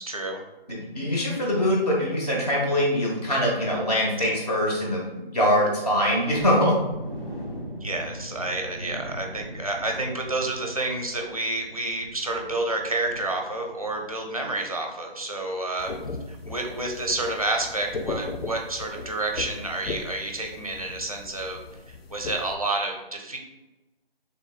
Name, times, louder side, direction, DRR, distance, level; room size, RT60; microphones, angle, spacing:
voice 1, 0.1-0.4 7.8-15.9 16.3-21.6 21.9-23.4, right 2 dB, 35° right, 2 dB, 0.5 m, -29 dB
voice 2, 0.8-6.8, equal, 40° left, -3 dB, 1.1 m, -23 dB
sound 1, 6.4-14.1 14.4-14.6 15.0-15.1, equal, 60° left, 1.5 m, -40 dB
sound 2, 15.8-22.5, left 3 dB, 80° left, 0.5 m, -37 dB
3.9 x 3.3 x 2.3 m, 1.0 s
figure-of-eight pair, 165°, 30 cm